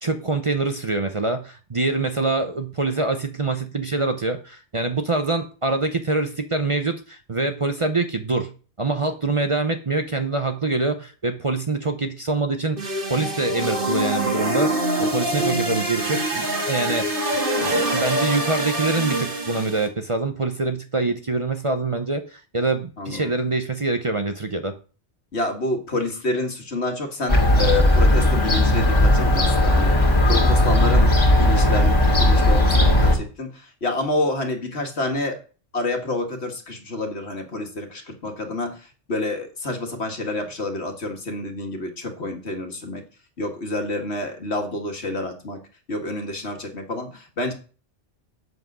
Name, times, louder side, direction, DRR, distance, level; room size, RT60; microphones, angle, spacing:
voice 1, 0.0-8.5 8.8-17.4 17.9-24.7, right 3 dB, 30° right, 7 dB, 0.8 m, -25 dB
sound 1, 12.8-19.9, right 1 dB, 50° right, 2.1 m, -25 dB
voice 2, 23.0-23.4 25.3-31.1 31.4-32.0 32.2-35.4 35.7-43.0 43.4-45.6 45.9-47.5, left 2 dB, 70° left, 4 dB, 2.1 m, -28 dB
Fowl / Gull seagull, 27.3-33.2, left 1 dB, 25° left, 2.3 m, -17 dB
7.9 x 7.6 x 6.1 m, 0.38 s
omnidirectional pair, 1.2 m